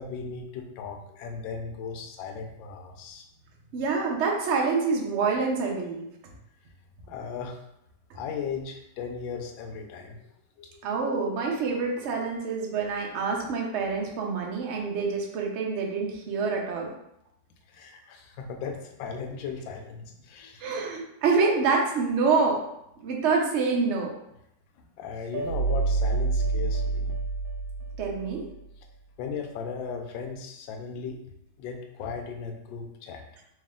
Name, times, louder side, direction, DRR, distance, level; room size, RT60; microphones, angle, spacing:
voice 1, 0.0-3.2 7.1-7.6 8.1-10.2 10.6-10.7 17.7-20.7 25.0-27.2 29.2-31.2 31.6-33.2, left 5 dB, 80° left, 3 dB, 1.3 m, -37 dB
voice 2, 3.7-6.1 10.8-16.9 20.6-22.6 23.0-24.1 28.0-28.4, right 4 dB, 65° right, -1 dB, 0.7 m, -26 dB
sound 1, 25.3-28.5, right 3 dB, 90° right, 1.4 m, -27 dB
3.3 x 2.8 x 3.6 m, 0.80 s
omnidirectional pair, 2.0 m